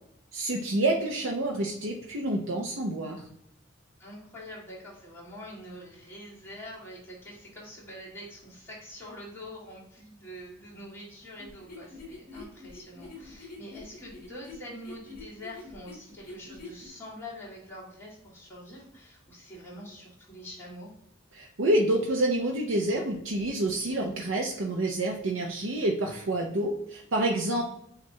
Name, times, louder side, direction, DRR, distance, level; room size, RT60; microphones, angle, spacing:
voice 1, 0.3-3.3 21.4-27.6, right 1 dB, 80° right, 0 dB, 0.6 m, -28 dB
voice 2, 4.0-20.9 27.5-27.6, left 1 dB, 10° left, -8 dB, 1.8 m, -45 dB
sound 1, 11.4-16.9, left 2 dB, 45° left, 1.0 m, -45 dB
7.4 x 2.5 x 2.7 m, 0.74 s
head